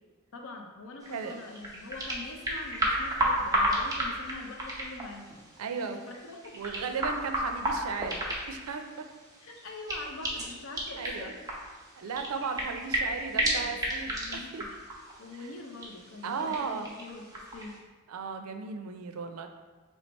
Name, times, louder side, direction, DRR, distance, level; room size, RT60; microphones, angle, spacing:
voice 1, 0.3-5.3 5.8-6.6 9.4-11.4 12.5-12.6 12.8-13.7 14.1-14.8 15.2-17.8, left 2 dB, 65° left, 2 dB, 0.6 m, -44 dB
sound 1, 1.0-17.8, right 1 dB, 15° right, 0.6 m, -34 dB
voice 2, 1.1-1.5 5.6-6.0 6.5-9.1 11.0-11.3 12.0-14.6 15.4-15.5 16.2-16.9 18.1-19.5, right 5 dB, 90° right, 6 dB, 0.4 m, -36 dB
3.2 x 3.2 x 4.1 m, 1.3 s
head